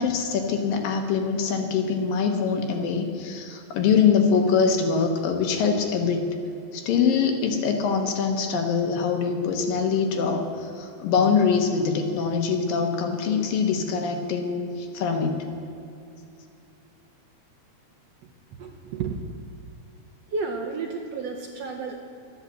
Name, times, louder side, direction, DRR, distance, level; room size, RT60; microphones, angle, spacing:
voice 1, 0.0-6.2 6.7-15.3, left 6 dB, 85° left, 4 dB, 3.1 m, -23 dB
voice 2, 18.6-19.2 20.3-22.0, right 4 dB, 65° right, 2 dB, 1.7 m, -31 dB
12.0 x 10.5 x 7.8 m, 2.7 s
omnidirectional pair, 3.9 m